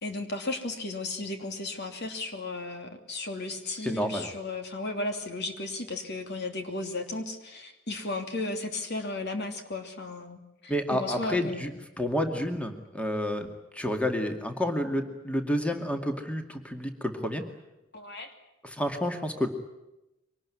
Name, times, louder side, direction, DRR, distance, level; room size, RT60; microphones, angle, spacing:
voice 1, 0.0-11.8 17.9-18.3, left 2 dB, 55° left, 5 dB, 3.0 m, -35 dB
voice 2, 3.8-4.3 10.7-11.7 12.0-13.5 13.7-17.4 18.6-19.5, equal, 5° left, 5 dB, 2.2 m, -29 dB
24.0 x 19.0 x 9.8 m, 0.95 s
head